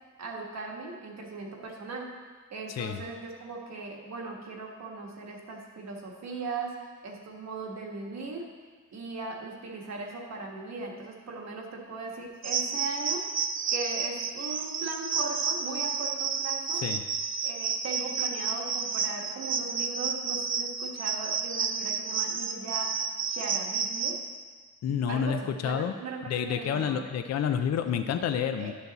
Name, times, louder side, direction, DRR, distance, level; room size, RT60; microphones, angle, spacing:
voice 1, 0.2-2.1 2.5-6.8 7.0-8.5 8.9-13.3 13.7-16.8 17.4-22.9 23.3-24.2 25.1-27.0 28.6-28.7, right 3 dB, 60° right, 0 dB, 1.4 m, -38 dB
voice 2, 2.7-3.0 16.8-17.0 24.8-25.9 26.3-28.7, left 8 dB, 60° left, 8 dB, 0.5 m, -29 dB
sound 1, 12.4-24.2, right 6 dB, 45° right, 0.5 m, -31 dB
10.5 x 7.0 x 4.0 m, 1.5 s
wide cardioid pair, 170°, 30 cm